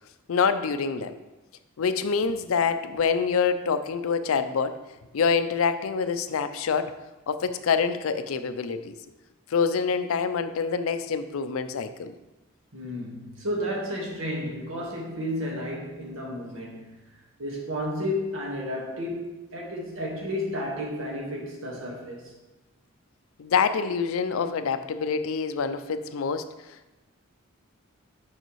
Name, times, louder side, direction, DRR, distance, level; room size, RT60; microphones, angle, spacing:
voice 1, 0.3-1.2 1.8-4.8 5.1-6.9 7.3-9.0 9.5-12.1 23.4-26.9, left 5 dB, 75° left, 11 dB, 0.4 m, -26 dB
voice 2, 12.7-17.0 17.4-22.3, equal, 70° right, -3 dB, 1.6 m, -32 dB
6.6 x 5.6 x 3.1 m, 1.1 s
head